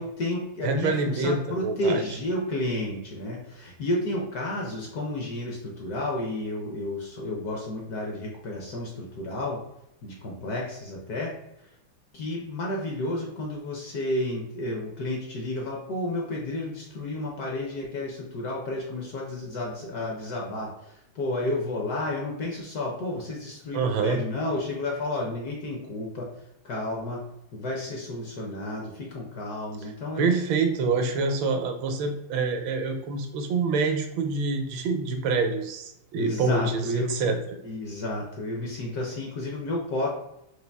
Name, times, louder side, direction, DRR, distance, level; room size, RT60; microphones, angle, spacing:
voice 1, 0.0-9.6 10.0-11.3 12.1-26.3 26.6-27.2 27.5-30.3 36.1-37.1 37.6-40.1, left 1 dB, 65° left, -1 dB, 1.0 m, -31 dB
voice 2, 0.6-2.0 23.7-24.2 30.2-37.4, right 4 dB, 75° right, 5 dB, 1.3 m, -26 dB
4.0 x 2.6 x 3.3 m, 0.84 s
omnidirectional pair, 2.2 m